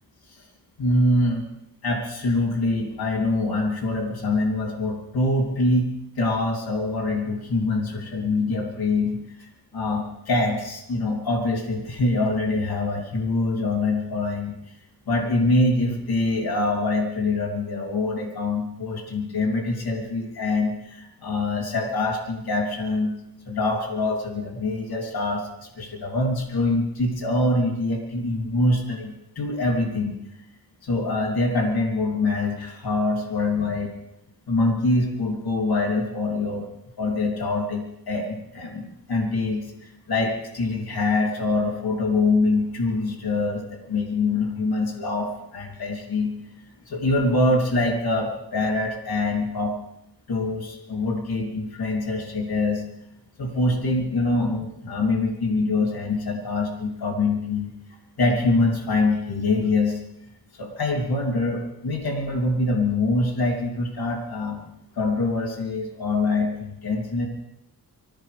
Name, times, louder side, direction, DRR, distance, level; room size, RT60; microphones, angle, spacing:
voice 1, 0.8-1.5 1.8-5.9 6.2-14.6 15.1-23.2 23.5-30.2 30.8-33.9 34.5-36.7 37.0-46.3 46.9-49.7 50.3-52.8 53.4-57.7 58.2-60.0 60.6-64.7 64.9-67.3, left 2 dB, 70° left, 0 dB, 3.1 m, -24 dB
25.0 x 15.5 x 3.4 m, 0.81 s
cardioid pair, 70°, 39 cm